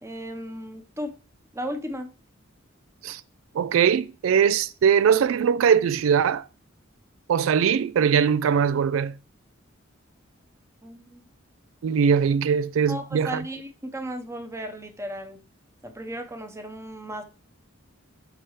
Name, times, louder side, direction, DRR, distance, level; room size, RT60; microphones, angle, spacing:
voice 1, 0.0-1.2 1.5-2.1 10.8-11.2 12.9-15.4 15.8-17.2, equal, 15° right, 0.9 m, -35 dB
voice 2, 3.5-6.4 7.3-9.1 11.8-13.4, right 7 dB, 85° right, 0.3 m, -21 dB
12.0 x 4.4 x 3.2 m
head